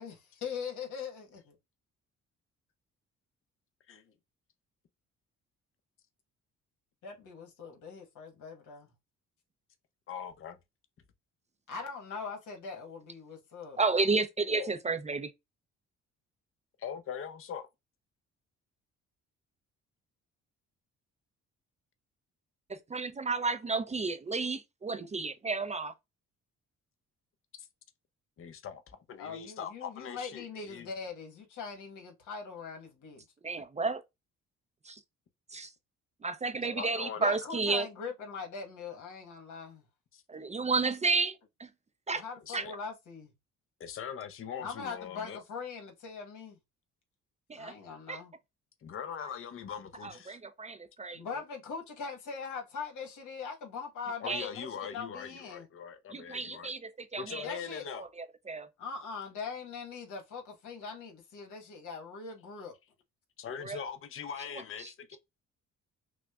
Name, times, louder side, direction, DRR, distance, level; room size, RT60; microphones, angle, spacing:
voice 1, 0.0-1.5 3.9-4.1 7.0-8.9 11.7-13.8 29.2-33.2 36.6-39.8 42.1-43.3 44.6-46.6 47.5-48.3 51.1-55.7 57.4-57.8 58.8-62.7, left 5 dB, 80° left, 1.3 m, -41 dB
voice 2, 10.1-10.6 14.5-14.7 16.8-17.7 27.6-27.7 28.4-28.8 29.1-30.9 36.7-37.4 40.1-40.2 42.4-42.7 43.8-45.4 48.8-50.4 54.2-56.7 57.2-58.0 63.4-65.2, left 7 dB, 45° left, 0.7 m, -41 dB
voice 3, 13.8-15.3 22.7-25.9 33.4-34.0 34.9-35.0 35.5-35.7 36.2-37.9 40.3-41.7 42.1-42.2 42.5-42.6 47.5-47.7 48.1-48.2 50.0-51.2 54.3-54.5 56.1-57.5 58.0-58.7 63.6-63.8 64.8-64.9, right 4 dB, 25° right, 0.5 m, -32 dB
6.0 x 2.1 x 2.3 m
cardioid pair, 90°, 30 cm